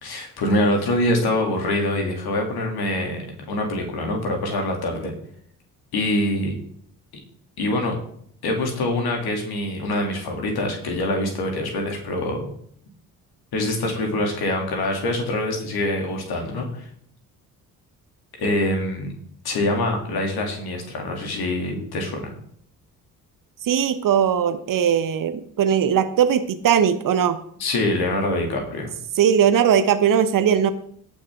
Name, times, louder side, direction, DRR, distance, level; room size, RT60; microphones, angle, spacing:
voice 1, 0.0-3.2 3.4-5.1 5.9-6.5 7.6-7.9 8.4-12.5 13.5-16.9 18.4-19.1 19.4-22.3 27.6-28.9, left 1 dB, 55° left, 2 dB, 2.9 m, -24 dB
voice 2, 23.6-27.4 29.1-30.7, right 8 dB, 45° right, 10 dB, 1.1 m, -19 dB
17.5 x 6.2 x 3.7 m, 0.63 s
figure-of-eight pair, 45°, 45 cm